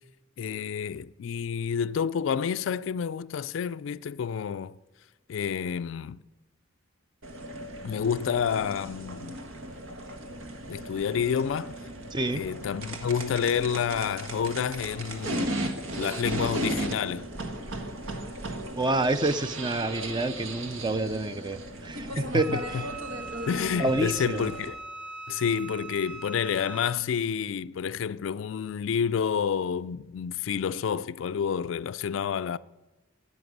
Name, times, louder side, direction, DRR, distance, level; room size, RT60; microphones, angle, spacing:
voice 1, 0.4-4.8 5.3-6.2 7.8-9.4 10.7-11.7 12.3-17.3 22.1-22.8 23.5-24.8 25.3-32.6, left 7 dB, 65° left, 0.3 m, -29 dB
sound 1, 7.2-24.7, right 1 dB, 75° right, 1.5 m, -36 dB
voice 2, 12.1-12.4 18.8-22.9 23.8-24.5, right 2 dB, 25° right, 0.5 m, -28 dB
Wind instrument woodwind instrument, 22.4-27.0, right 3 dB, 5° right, 1.2 m, -41 dB
11.0 x 8.8 x 9.3 m
head